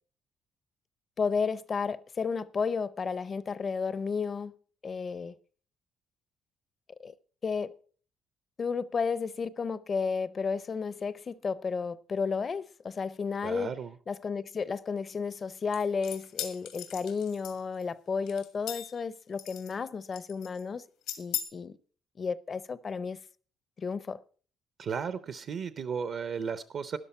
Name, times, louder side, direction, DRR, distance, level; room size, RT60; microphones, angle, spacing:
voice 1, 1.2-4.5 4.8-5.3 7.0-7.1 7.4-7.7 8.6-13.7 14.1-20.8 21.2-21.8 22.2-23.2 23.8-24.2, left 5 dB, 30° left, 0.5 m, -32 dB
voice 2, 13.4-13.9 24.8-27.0, right 6 dB, 45° right, 0.6 m, -34 dB
sound 1, 15.7-17.8 18.3-19.0 19.4-19.9 20.1-20.6 21.1-21.4, left 11 dB, 90° left, 1.9 m, -38 dB
13.0 x 11.0 x 4.3 m
cardioid pair, 150°, 0 cm